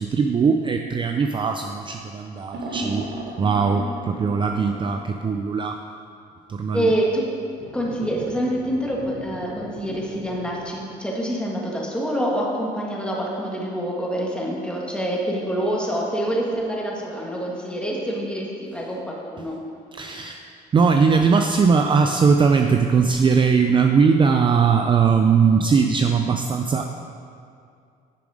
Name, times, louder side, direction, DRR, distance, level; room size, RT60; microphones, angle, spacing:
voice 1, 0.0-3.1 3.4-5.8 6.5-6.9 19.4-19.5 20.0-20.5 20.7-27.0, right 5 dB, 30° right, 5 dB, 0.5 m, -20 dB
sound 1, 2.5-5.2 7.5-10.7, right 1 dB, 75° right, 2.1 m, -36 dB
voice 2, 6.7-7.3 7.7-19.6, right 1 dB, 5° left, -3 dB, 1.8 m, -26 dB
10.0 x 7.1 x 5.0 m, 2.4 s
cardioid pair, 110°, 17 cm